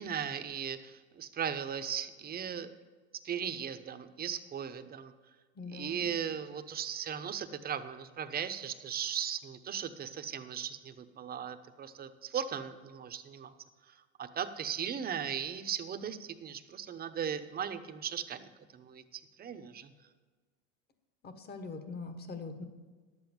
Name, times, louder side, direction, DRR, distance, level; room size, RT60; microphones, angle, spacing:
voice 1, 0.0-2.7 3.2-5.1 5.7-13.5 13.9-19.9, right 8 dB, 25° right, 10 dB, 0.9 m, -38 dB
voice 2, 5.6-6.1 21.2-22.6, left 3 dB, 30° left, 8 dB, 1.5 m, -42 dB
11.0 x 8.1 x 7.1 m, 1.4 s
supercardioid pair, 120°, 33 cm